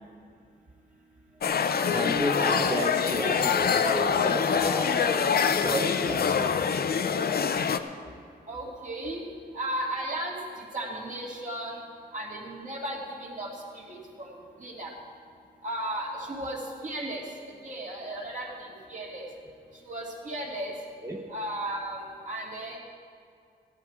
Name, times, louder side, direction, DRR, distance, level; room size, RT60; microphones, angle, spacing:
sound 1, 1.4-7.8, left 6 dB, 60° left, 0.6 m, -25 dB
voice 1, 1.9-5.1 5.6-6.5 6.9-7.0 7.3-7.4 18.5-18.6 21.0-21.2, right 1 dB, 15° right, -1 dB, 1.0 m, -32 dB
voice 2, 8.5-9.2 9.5-11.8 12.1-14.3 14.6-14.9 15.6-19.2 19.8-20.7 21.3-22.8, right 1 dB, 45° right, -3 dB, 2.6 m, -35 dB
15.5 x 11.0 x 4.7 m, 2.3 s
wide cardioid pair, 115°, 18 cm